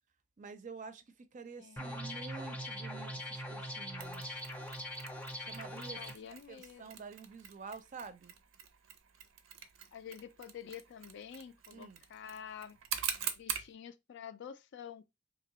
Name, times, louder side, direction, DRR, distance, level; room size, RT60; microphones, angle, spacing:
voice 1, 0.4-4.4 5.4-6.0 6.5-8.3 11.7-12.0, right 5 dB, 40° right, 0.5 m, -48 dB
voice 2, 1.6-2.1 6.0-6.9 9.9-12.8 13.3-15.1, left 8 dB, 60° left, 0.4 m, -48 dB
sound 1, 1.8-6.1, equal, 10° left, 0.6 m, -42 dB
Mechanisms, 4.0-13.7, right 8 dB, 85° right, 0.6 m, -44 dB
3.6 x 2.9 x 3.0 m
head